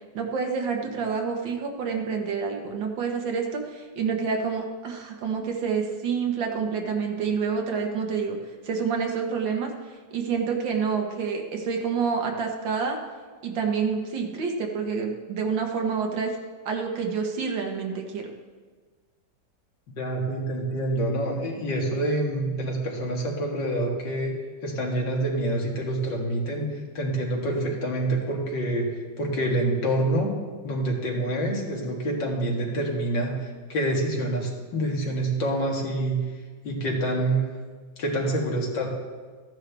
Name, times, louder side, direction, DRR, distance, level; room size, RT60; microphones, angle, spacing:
voice 1, 0.1-8.4 8.6-9.7 10.1-13.0 13.4-16.4 16.7-18.3, right 5 dB, 85° right, 2 dB, 2.0 m, -28 dB
voice 2, 20.0-24.3 24.6-26.7 26.9-30.3 30.6-36.2 36.6-37.5 38.0-38.9, right 1 dB, 75° left, -1 dB, 2.5 m, -27 dB
14.5 x 10.0 x 3.4 m, 1.5 s
omnidirectional pair, 2.0 m